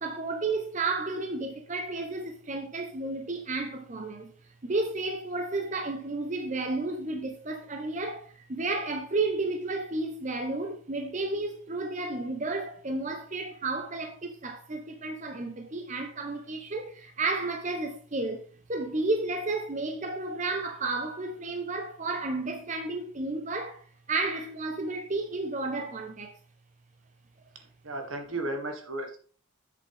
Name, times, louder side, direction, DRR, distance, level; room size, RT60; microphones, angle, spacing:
voice 1, 0.0-4.3 4.6-26.3, right 3 dB, 35° right, 0.8 m, -32 dB
voice 2, 27.5-29.2, right 2 dB, 75° right, 1.7 m, -35 dB
7.7 x 7.2 x 3.5 m
head